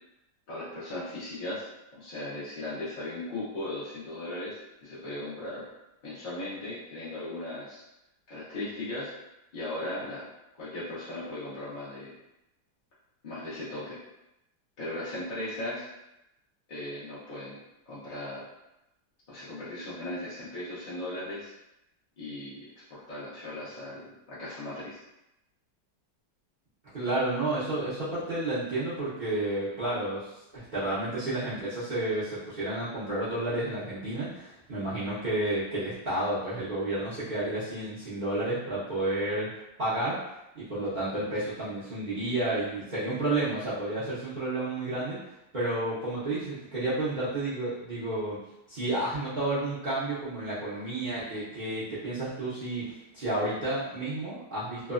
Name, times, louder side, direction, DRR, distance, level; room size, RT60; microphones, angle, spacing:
voice 1, 0.5-1.7 1.9-5.7 6.0-7.8 8.3-9.1 9.5-10.2 10.6-12.1 13.2-14.0 14.8-15.9 16.7-17.6 17.9-18.4 19.3-21.5 22.2-25.0, left 1 dB, 50° left, -9 dB, 0.6 m, -37 dB
voice 2, 26.9-39.5 39.8-40.2 40.5-45.2 45.5-48.4 48.7-54.9, right 2 dB, 55° right, -13 dB, 0.5 m, -31 dB
3.2 x 2.1 x 2.4 m, 0.90 s
omnidirectional pair, 1.9 m